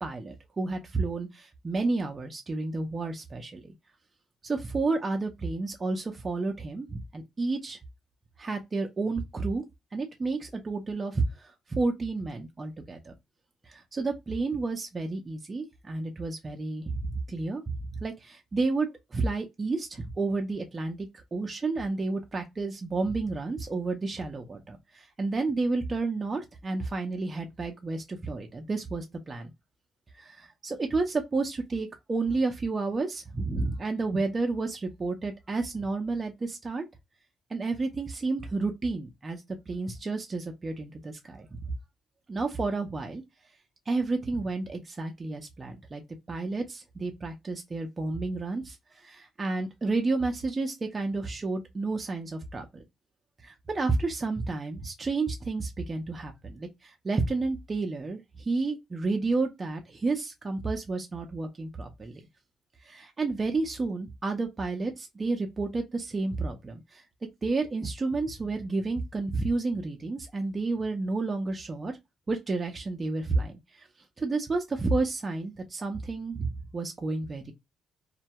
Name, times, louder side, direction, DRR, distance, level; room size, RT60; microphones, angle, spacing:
voice 1, 0.0-3.7 4.4-7.8 8.4-9.6 9.9-13.1 13.7-17.7 18.0-29.5 30.2-36.8 37.5-41.6 42.3-43.2 43.9-46.0 46.3-48.8 49.0-52.8 53.4-58.2 58.5-62.2 62.8-67.0 67.4-72.0 72.3-73.5 73.8-73.9 74.2-77.5, right 3 dB, 30° right, 0.5 m, -31 dB
2.2 x 2.1 x 2.8 m
cardioid pair, 90°, 0 cm